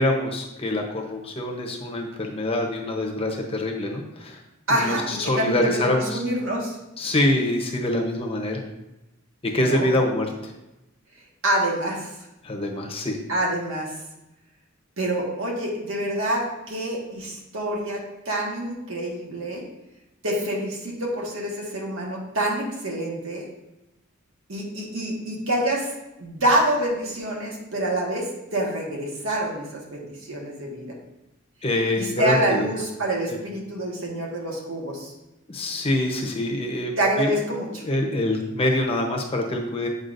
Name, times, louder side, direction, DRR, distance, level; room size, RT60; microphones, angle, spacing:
voice 1, 0.0-4.4 4.7-6.2 7.0-8.6 9.5-10.5 12.4-13.2 31.6-32.7 35.5-37.3 37.8-39.9, left 1 dB, 25° left, 1 dB, 0.8 m, -25 dB
voice 2, 4.7-6.8 9.5-9.9 11.4-12.1 13.3-13.9 15.0-19.6 20.2-23.4 24.5-25.9 26.2-30.9 32.0-35.1 37.0-37.8, right 1 dB, 75° right, -2 dB, 1.4 m, -26 dB
7.9 x 4.8 x 2.6 m, 0.95 s
head